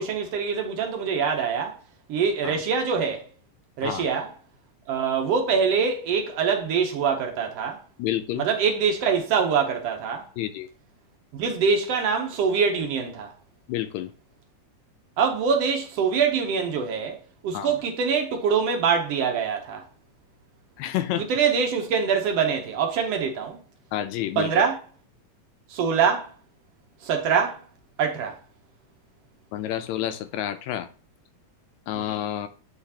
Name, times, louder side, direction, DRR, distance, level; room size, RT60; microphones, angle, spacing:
voice 1, 0.0-1.8 2.1-3.3 3.8-4.3 4.9-7.8 8.4-10.3 11.3-13.3 15.2-19.8 21.2-23.6 24.4-24.8 25.7-26.3 27.0-27.6 28.0-28.4 31.9-32.1, right 6 dB, 70° right, 1.7 m, -24 dB
voice 2, 8.0-8.5 10.4-10.7 13.7-14.1 17.5-17.7 20.8-21.2 23.9-24.5 29.5-30.9 31.9-32.5, left 12 dB, 80° left, 1.8 m, -29 dB
8.8 x 4.4 x 2.8 m
omnidirectional pair, 3.4 m